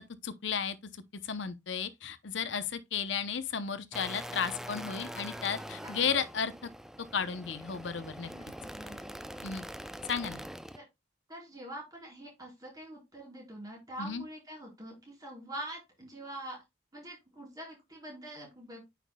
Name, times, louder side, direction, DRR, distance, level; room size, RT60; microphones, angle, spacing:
voice 1, 0.2-6.7 7.1-8.3 9.4-9.6 10.0-10.4 14.0-14.2, left 6 dB, 70° left, 0.8 m, -34 dB
sound 1, 3.9-10.8, equal, ahead, 0.4 m, -43 dB
voice 2, 8.3-9.1 10.7-10.8 11.3-16.6 16.9-18.8, right 1 dB, 20° right, 4.6 m, -45 dB
9.2 x 5.9 x 2.3 m
head